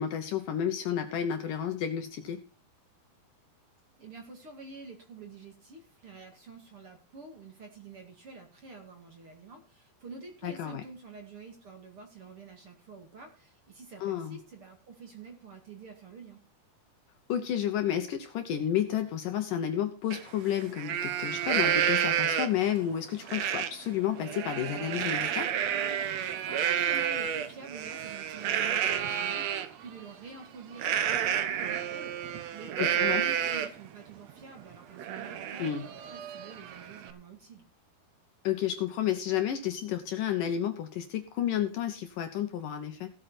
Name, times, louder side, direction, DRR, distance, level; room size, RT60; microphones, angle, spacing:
voice 1, 0.0-2.4 10.4-10.8 14.0-14.4 17.3-25.5 32.8-33.2 35.6-35.9 38.4-43.1, left 10 dB, 70° left, 7 dB, 2.3 m, -31 dB
voice 2, 4.0-16.4 26.4-37.6, right 4 dB, 40° right, 4 dB, 2.7 m, -48 dB
Livestock farm animals working animals, 20.1-20.2 20.6-22.7 23.3-23.7 24.1-29.7 30.8-33.9 34.3-34.4 34.7-37.1, right 9 dB, 75° right, 1.5 m, -30 dB
16.5 x 8.4 x 4.3 m, 0.36 s
omnidirectional pair, 4.7 m